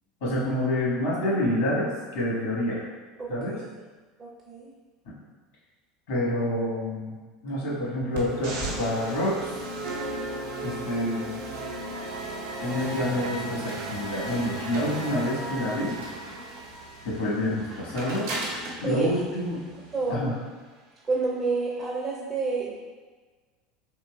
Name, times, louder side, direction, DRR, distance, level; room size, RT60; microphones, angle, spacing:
voice 1, 0.2-2.8 3.3-3.6 6.1-7.2 7.4-9.5 10.6-11.4 12.6-15.9 17.0-18.3 18.8-19.6 20.1-20.3, left 1 dB, 80° left, -5 dB, 1.1 m, -27 dB
voice 2, 3.2-3.6 4.2-4.7 18.8-19.1 19.9-20.3 21.1-22.7, right 4 dB, 35° right, -4 dB, 0.6 m, -29 dB
sound 1, 8.1-20.1, right 2 dB, 80° right, 0.8 m, -35 dB
3.8 x 2.8 x 2.2 m, 1.4 s
hypercardioid pair, 85°, 0 cm